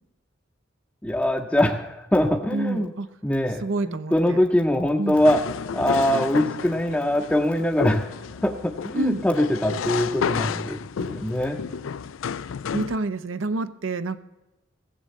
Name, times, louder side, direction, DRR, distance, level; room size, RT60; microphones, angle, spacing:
voice 1, 1.0-2.9 3.2-5.4 5.7-8.1 8.4-11.6, left 1 dB, 5° left, 1 dB, 0.6 m, -23 dB
voice 2, 2.5-3.1 3.6-4.4 5.0-5.2 8.9-9.2 12.7-14.2, right 2 dB, 75° right, 12 dB, 0.7 m, -27 dB
sound 1, 5.1-13.0, left 6 dB, 75° left, 0.4 m, -31 dB
16.0 x 7.4 x 7.7 m, 0.99 s
head